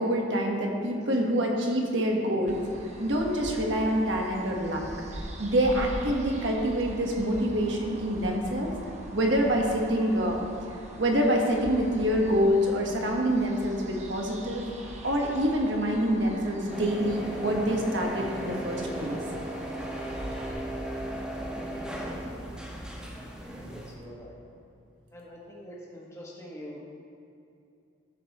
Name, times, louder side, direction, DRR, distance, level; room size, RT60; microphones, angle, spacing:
voice 1, 0.0-2.6 3.0-4.8 5.4-8.7 9.1-10.4 11.0-14.6 15.0-19.2, equal, 75° right, 0 dB, 1.4 m, -26 dB
sound 1, 2.5-20.5, right 1 dB, 35° right, 0.9 m, -42 dB
sound 2, 16.7-23.9, right 1 dB, 5° right, 1.0 m, -36 dB
voice 2, 21.8-22.5 23.5-24.4 25.1-26.8, equal, 15° left, -5 dB, 1.5 m, -45 dB
11.5 x 7.0 x 4.2 m, 2.6 s
head